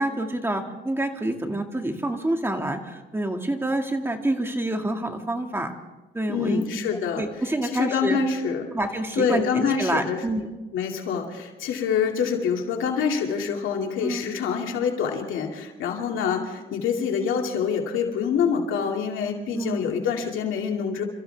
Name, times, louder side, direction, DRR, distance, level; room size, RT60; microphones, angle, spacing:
voice 1, 0.0-5.7 6.1-6.6 7.2-8.2 8.7-10.5 14.0-14.3 19.5-19.8, right 1 dB, 10° right, 4 dB, 2.2 m, -27 dB
voice 2, 6.3-7.2 7.6-8.7 9.2-10.2 10.7-21.0, left 6 dB, 85° left, 1 dB, 2.5 m, -26 dB
28.5 x 14.5 x 3.5 m, 1.1 s
cardioid pair, 90°, 20 cm